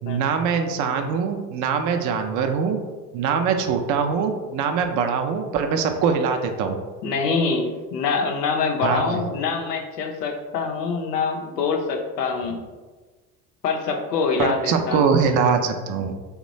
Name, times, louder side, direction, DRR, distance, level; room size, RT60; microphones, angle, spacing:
voice 1, 0.0-2.8 3.1-6.8 8.8-9.2 14.4-16.2, right 6 dB, 40° right, 5 dB, 0.5 m, -23 dB
voice 2, 7.0-12.6 13.6-15.1, left 5 dB, 85° left, 3 dB, 0.6 m, -25 dB
2.9 x 2.2 x 4.0 m, 1.3 s
hypercardioid pair, 70°, 47 cm